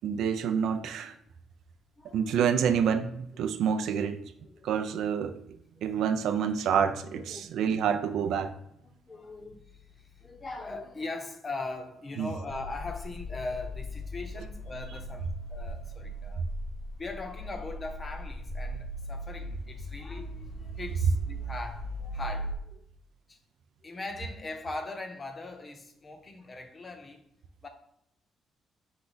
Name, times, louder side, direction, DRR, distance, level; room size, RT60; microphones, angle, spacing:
voice 1, 0.0-1.1 2.1-4.2 4.6-5.3 5.8-8.5 12.2-12.3, right 7 dB, 80° right, 0.4 m, -27 dB
voice 2, 2.0-2.3 3.3-3.5 4.4-4.9 5.8-6.1 7.1-7.6 9.1-16.5 17.0-22.8 23.3-23.4 23.8-27.2 27.6-27.7, left 2 dB, 35° left, 0.7 m, -40 dB
sound 1, 12.5-22.6, equal, 70° left, 0.5 m, -38 dB
4.9 x 2.2 x 3.9 m
cardioid pair, 90°, 0 cm